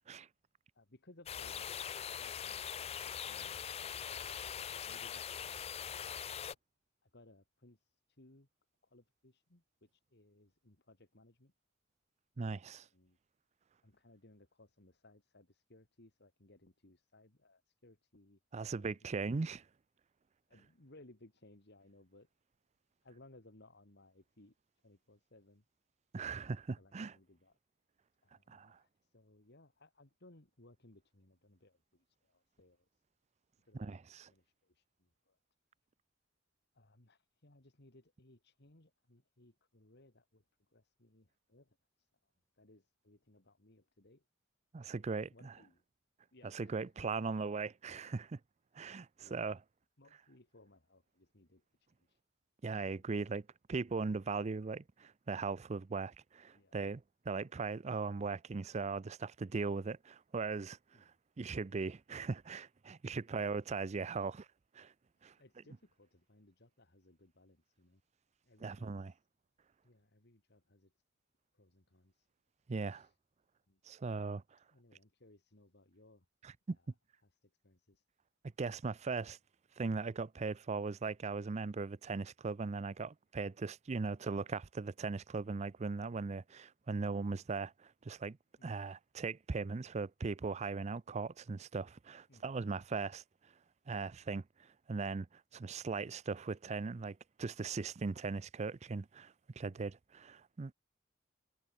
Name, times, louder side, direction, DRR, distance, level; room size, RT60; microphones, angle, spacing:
voice 1, 0.7-4.4 4.8-6.0 6.5-6.6 7.0-8.5 8.8-11.5 12.6-13.2 13.8-18.4 18.8-19.4 20.5-22.3 23.0-24.6 24.8-25.6 26.7-27.6 28.2-33.0 33.6-34.0 34.3-35.4 36.7-44.2 45.3-45.8 46.3-47.1 48.8-48.9 49.2-49.6 50.0-52.2 52.8-53.1 56.5-56.8 60.9-61.2 63.4-63.6 65.1-68.0 68.4-69.3 69.8-70.9 71.5-72.3 72.9-73.2 73.7-73.8 74.6-76.3 76.7-76.9 77.2-78.0 85.4-85.6 88.6-88.8 92.3-92.6 92.9-93.0 95.5-95.6, left 2 dB, 55° left, 2.6 m, -64 dB
sound 1, 1.3-6.5, left 8 dB, 30° left, 0.4 m, -42 dB
voice 2, 12.4-12.9 18.5-19.6 26.1-27.1 28.5-28.8 33.7-34.3 44.7-45.5 46.5-48.4 48.7-49.6 52.6-60.8 61.4-64.5 64.7-64.9 65.2-65.3 68.6-69.1 72.7-73.1 73.9-74.4 76.4-76.8 78.6-79.4 79.8-87.7 88.0-88.4 88.6-93.2 93.9-100.7, right 4 dB, 35° right, 0.4 m, -39 dB
head